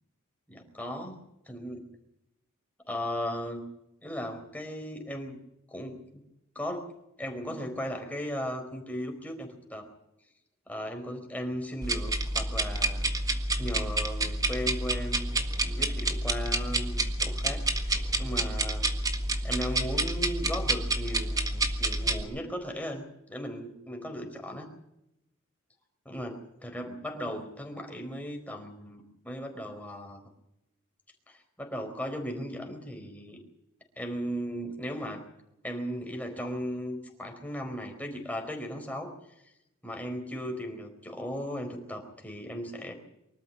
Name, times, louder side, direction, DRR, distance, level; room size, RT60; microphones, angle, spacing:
voice 1, 0.5-1.2 1.5-1.9 2.9-3.7 4.0-5.4 5.7-6.0 6.5-6.9 7.2-9.9 10.7-15.3 15.6-18.9 19.4-24.7 26.0-30.2 31.3-33.4 34.0-35.2 35.6-39.1 39.8-42.9, equal, 5° left, 3 dB, 4.4 m, -37 dB
sound 1, 11.8-22.2, right 2 dB, 15° right, 1.6 m, -29 dB
24.5 x 13.5 x 8.5 m, 0.86 s
head